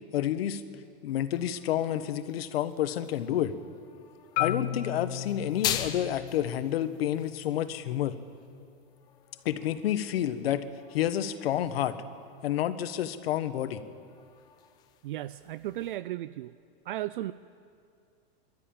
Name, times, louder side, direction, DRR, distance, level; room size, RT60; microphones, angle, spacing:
voice 1, 0.1-0.6 1.0-3.5 4.4-8.1 9.4-12.0 12.4-13.8, left 11 dB, 70° left, 11 dB, 1.3 m, -29 dB
sound 1, 1.1-16.0, left 11 dB, 15° left, 0.5 m, -43 dB
Marimba xylophone, 4.4-8.5, left 11 dB, 45° left, 0.8 m, -36 dB
voice 2, 15.0-16.5 16.9-17.3, right 14 dB, 55° right, 16 dB, 0.4 m, -35 dB
24.0 x 13.0 x 8.9 m, 2.4 s
supercardioid pair, 175°, 31 cm